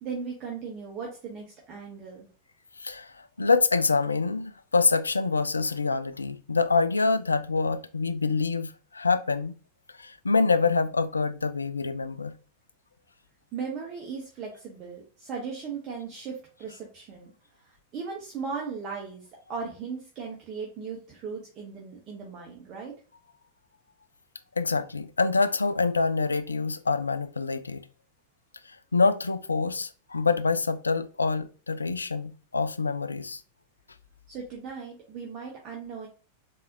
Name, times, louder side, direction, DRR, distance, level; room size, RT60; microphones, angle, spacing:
voice 1, 0.0-2.3 13.5-17.3 17.6-22.9 34.3-36.1, right 5 dB, 35° right, 0.9 m, -37 dB
voice 2, 2.8-9.5 10.0-12.3 24.6-27.9 28.7-33.4, left 4 dB, 75° left, 0.3 m, -26 dB
3.9 x 2.8 x 2.6 m
figure-of-eight pair, 90°, 0 cm